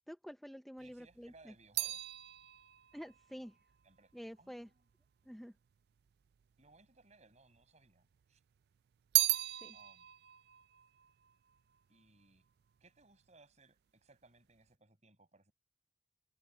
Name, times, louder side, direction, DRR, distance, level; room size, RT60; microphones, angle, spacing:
voice 1, 0.1-1.5 2.9-3.6 4.1-4.7 5.3-5.5 9.6-9.8, equal, ahead, 0.6 m, -48 dB
voice 2, 0.8-2.0 3.8-4.1 4.4-4.9 6.6-8.4 9.7-10.1 11.9-12.4 12.8-15.5, right 3 dB, 40° right, 6.6 m, -64 dB
sound 1, 0.8-5.2 6.0-6.8 7.1-8.2 8.6-12.1 12.4-12.9, right 19 dB, 60° right, 0.3 m, -37 dB
head